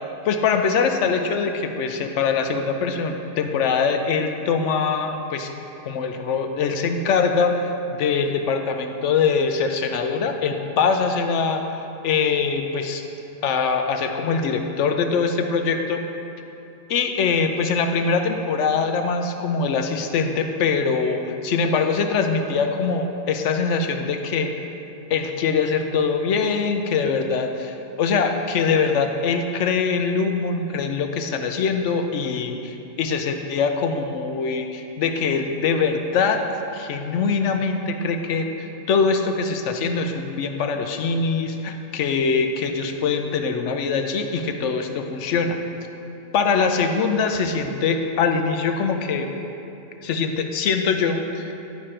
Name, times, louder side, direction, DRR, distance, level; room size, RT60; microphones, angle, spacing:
voice 1, 0.2-5.5 5.9-11.6 12.0-13.0 13.4-16.0 16.9-24.5 25.1-36.4 36.7-45.6 46.3-49.3 50.0-51.5, left 5 dB, 65° left, 5 dB, 0.9 m, -23 dB
11.0 x 5.0 x 4.3 m, 2.9 s
omnidirectional pair, 1.4 m